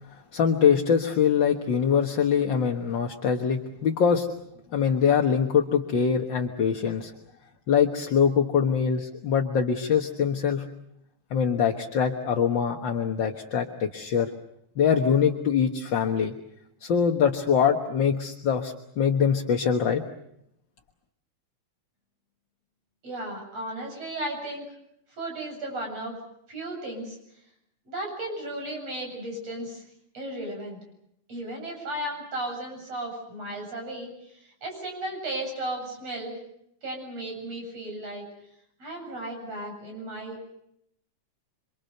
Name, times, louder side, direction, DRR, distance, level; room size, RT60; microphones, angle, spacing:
voice 1, 0.3-4.3 4.7-7.1 7.7-10.6 11.3-14.3 14.8-16.3 16.8-20.0, left 7 dB, 50° left, 2 dB, 1.7 m, -23 dB
voice 2, 23.0-24.7 25.2-26.2 26.5-27.2 27.9-29.8 30.1-30.8 31.3-36.4 36.8-38.3 38.8-40.6, right 1 dB, 60° right, 2 dB, 9.1 m, -35 dB
28.0 x 25.0 x 6.7 m, 0.77 s
omnidirectional pair, 3.3 m